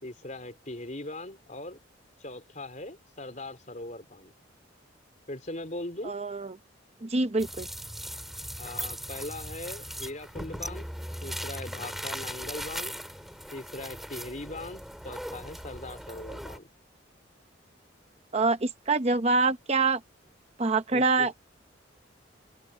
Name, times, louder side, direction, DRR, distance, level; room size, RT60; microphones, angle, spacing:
voice 1, 0.0-1.8 2.2-4.3 5.3-6.1 8.6-10.9 11.2-12.9 13.5-16.7 20.9-21.3, left 2 dB, 40° left, 4.1 m, -40 dB
voice 2, 6.0-6.6 7.0-7.7 18.3-20.0 20.6-21.3, right 3 dB, 35° right, 0.8 m, -25 dB
sound 1, 7.4-16.6, equal, ahead, 4.9 m, -39 dB
open air
head